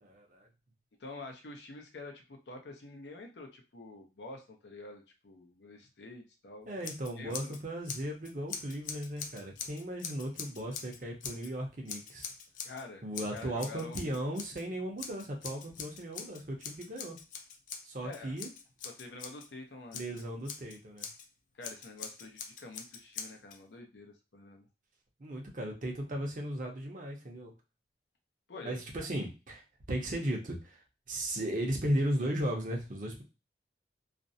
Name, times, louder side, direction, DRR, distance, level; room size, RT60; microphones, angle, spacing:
voice 1, 0.0-0.5 6.7-12.3 13.0-17.2 17.8-18.5 19.9-21.1 25.2-27.5 28.6-29.6 29.9-33.2, right 1 dB, 45° right, 2 dB, 0.6 m, -36 dB
voice 2, 1.0-6.9 7.2-7.5 12.6-13.0 13.3-14.2 18.0-18.4 18.8-20.2 21.5-24.7 28.5-28.8, left 3 dB, 80° left, 3 dB, 0.6 m, -47 dB
Scissors, 6.8-7.6 7.9-11.5 11.9-12.8 13.1-14.6 15.0-19.5 19.9-21.3 21.6-23.6, left 6 dB, 45° left, 0.3 m, -43 dB
2.4 x 2.0 x 2.6 m, 0.29 s
head